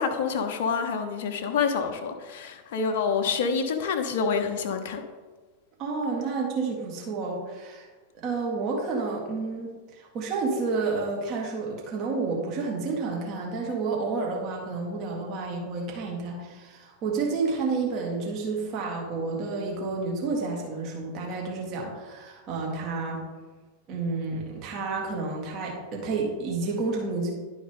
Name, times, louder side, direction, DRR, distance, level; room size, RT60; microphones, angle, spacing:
voice 1, 0.0-5.0, left 5 dB, 55° left, 7 dB, 0.9 m, -27 dB
voice 2, 5.8-7.9 8.2-9.7 10.0-23.2 23.9-27.3, right 4 dB, 40° right, -1 dB, 1.8 m, -30 dB
11.0 x 4.8 x 3.7 m, 1.3 s
figure-of-eight pair, 90°, 0 cm